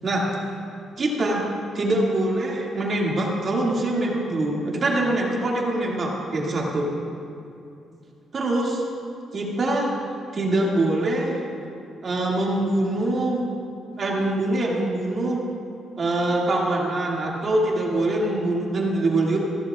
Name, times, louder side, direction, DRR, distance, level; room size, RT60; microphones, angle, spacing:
voice 1, 0.0-0.3 1.0-1.4 1.7-6.9 8.3-8.8 9.3-9.9 10.3-11.4 12.0-13.4 14.0-15.4 16.0-19.4, right 2 dB, 40° right, -3 dB, 2.2 m, -24 dB
15.0 x 15.0 x 2.4 m, 2.6 s
cardioid pair, 125°, 0 cm